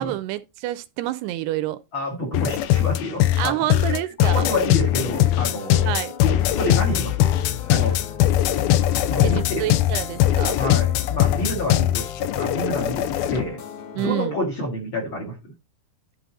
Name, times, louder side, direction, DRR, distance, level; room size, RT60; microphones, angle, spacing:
voice 1, 0.0-1.8 3.4-4.5 5.9-6.1 9.2-10.6 14.0-14.3, right 14 dB, 80° right, 2.5 m, -28 dB
voice 2, 1.9-3.6 3.9-5.9 6.2-7.3 7.7-8.0 9.1-9.7 10.6-13.6 14.0-15.3, left 1 dB, 40° left, 2.0 m, -28 dB
sound 1, 2.3-13.5, left 13 dB, 80° left, 2.2 m, -21 dB
sound 2, 4.9-14.1, left 7 dB, 65° left, 2.3 m, -39 dB
11.5 x 4.0 x 4.1 m
omnidirectional pair, 4.8 m